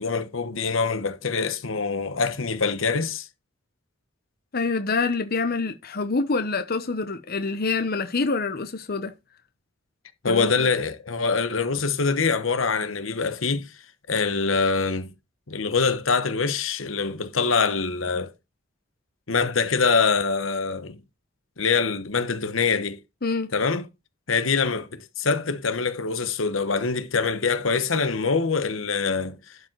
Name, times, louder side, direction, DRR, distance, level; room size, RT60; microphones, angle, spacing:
voice 1, 0.0-3.3 10.2-13.7 14.1-15.1 15.5-18.3 19.3-21.0 21.6-23.0 23.5-23.9 24.3-29.6, left 4 dB, 80° left, 1.1 m, -24 dB
voice 2, 4.5-9.1 10.3-10.5 23.2-23.5, left 3 dB, 50° left, 0.9 m, -26 dB
12.0 x 5.2 x 4.6 m
head